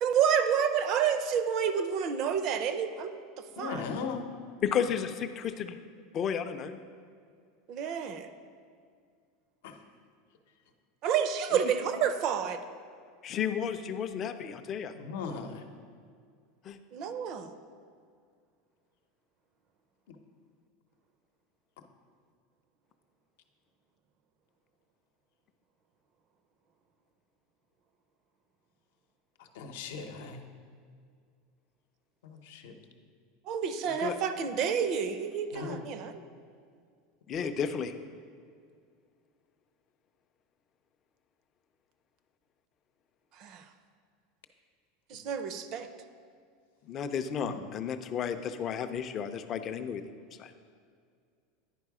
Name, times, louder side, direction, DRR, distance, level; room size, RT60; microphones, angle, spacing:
voice 1, 0.0-3.2 3.6-3.8 7.7-8.3 11.0-12.6 16.9-17.5 33.5-36.2 43.4-43.6 45.1-45.9, right 7 dB, 40° right, 10 dB, 0.5 m, -29 dB
voice 2, 3.6-4.2 9.6-9.8 15.0-15.6 29.6-30.4 32.2-32.7 35.5-35.8 47.4-47.6, left 5 dB, 80° left, 5 dB, 0.8 m, -38 dB
voice 3, 4.6-5.8 6.1-6.8 13.2-14.9 16.7-16.8 33.9-34.2 37.3-37.9 46.9-50.0 50.4-50.5, left 7 dB, 30° left, 8 dB, 0.4 m, -32 dB
9.9 x 4.8 x 4.8 m, 2.2 s
supercardioid pair, 155°, 0 cm